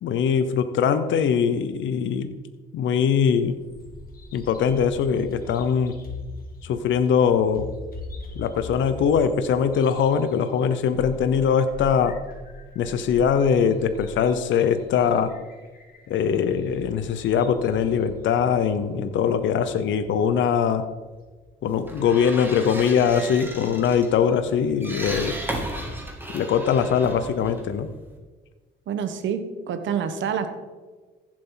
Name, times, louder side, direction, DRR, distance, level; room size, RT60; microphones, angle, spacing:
voice 1, 0.0-2.3 2.7-3.6 4.3-6.0 6.6-7.7 8.3-12.2 12.8-15.3 16.1-20.9 21.6-25.4 26.3-27.9, left 7 dB, 70° left, 10 dB, 0.8 m, -22 dB
Bird vocalization bird call bird song, 3.2-21.3, left 3 dB, 50° left, 2.4 m, -42 dB
sound 1, 21.7-28.2, right 1 dB, 10° right, 2.5 m, -35 dB
voice 2, 28.9-30.5, right 7 dB, 70° right, 8 dB, 1.2 m, -27 dB
15.5 x 7.6 x 3.9 m, 1.3 s
cardioid pair, 90°, 20 cm